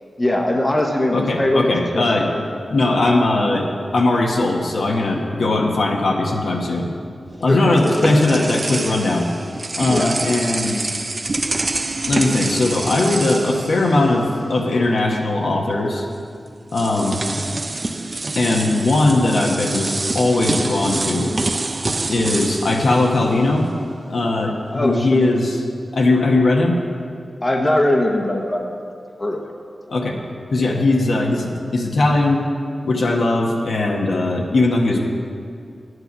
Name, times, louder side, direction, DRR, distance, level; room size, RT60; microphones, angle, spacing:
voice 1, 0.2-2.4 7.5-8.2 9.9-10.1 24.7-25.3 27.4-28.7 29.2-29.4, left 1 dB, 25° left, 2 dB, 1.0 m, -21 dB
voice 2, 1.1-2.3 2.7-3.7 3.9-6.9 7.4-9.3 9.8-10.9 12.1-16.1 16.7-17.2 18.3-21.3 22.1-23.7 24.1-25.6 25.9-26.8 29.9-30.2 30.5-32.4 32.8-35.0, left 2 dB, 75° left, 0 dB, 1.3 m, -19 dB
sound 1, 7.3-14.5 14.8-15.0 16.1-16.2 16.7-23.9, right 2 dB, 40° right, 0.5 m, -26 dB
9.8 x 8.0 x 6.1 m, 2.3 s
wide cardioid pair, 75°, 0 cm